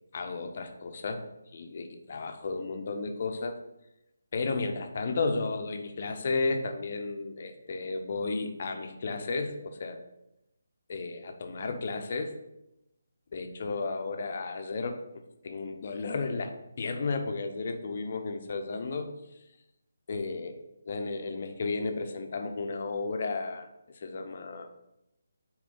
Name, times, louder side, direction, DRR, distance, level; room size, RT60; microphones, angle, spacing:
voice 1, 0.1-1.2 1.5-3.6 4.3-10.0 10.9-12.3 13.3-15.0 15.4-19.1 20.1-20.6 20.9-23.7 23.9-24.7, left 3 dB, 40° left, 5 dB, 0.7 m, -33 dB
8.3 x 3.1 x 3.9 m, 0.89 s
figure-of-eight pair, 150°, 0 cm